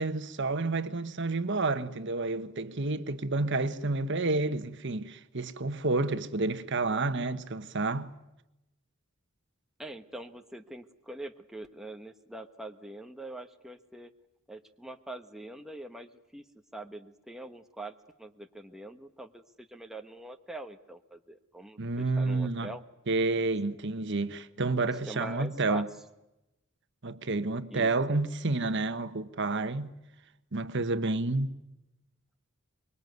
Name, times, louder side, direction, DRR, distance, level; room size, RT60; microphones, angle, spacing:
voice 1, 0.0-8.1 21.8-22.7 23.1-25.9 27.0-29.9 30.5-31.6, right 3 dB, 60° right, 1.3 m, -30 dB
voice 2, 9.8-14.1 14.5-16.4 16.7-22.8 25.1-25.9 27.7-27.9, right 1 dB, ahead, 1.1 m, -43 dB
25.5 x 22.0 x 9.4 m
head